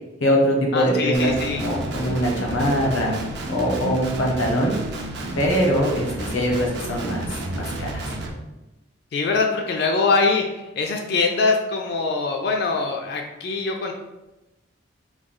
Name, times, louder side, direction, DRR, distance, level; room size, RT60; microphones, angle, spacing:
voice 1, 0.2-3.1 3.5-4.8 5.4-7.2 7.5-7.9, equal, 80° left, 0 dB, 0.8 m, -22 dB
voice 2, 0.7-1.6 9.1-10.4 10.8-13.9, left 4 dB, 50° left, 2 dB, 0.3 m, -23 dB
Guitar, 1.1-8.3, right 1 dB, 55° right, 0.4 m, -31 dB
3.1 x 2.2 x 3.7 m, 0.99 s
head